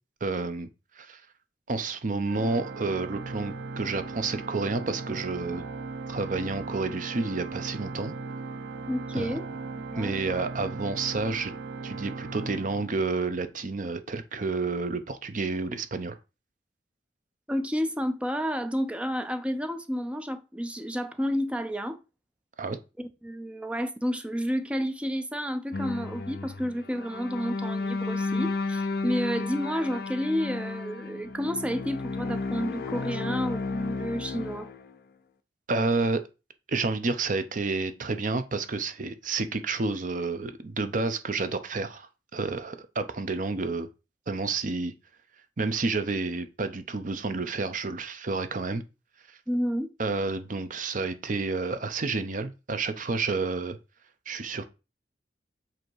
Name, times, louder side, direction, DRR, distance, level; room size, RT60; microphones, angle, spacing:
voice 1, 0.2-0.7 1.0-1.2 1.7-5.6 6.1-8.1 9.1-9.4 9.9-11.5 11.8-16.2 22.6-22.8 35.7-36.2 36.7-43.9 44.3-44.9 45.6-48.8 50.0-53.8 54.3-54.7, right 3 dB, 45° right, 0.7 m, -30 dB
Organ, 2.3-13.4, right 3 dB, 80° right, 0.6 m, -38 dB
voice 2, 8.9-9.4 9.9-10.2 17.5-22.0 23.0-34.7 49.5-49.9, equal, 5° right, 0.5 m, -30 dB
sound 1, 25.7-34.9, left 3 dB, 55° left, 0.6 m, -33 dB
7.7 x 2.8 x 4.7 m
head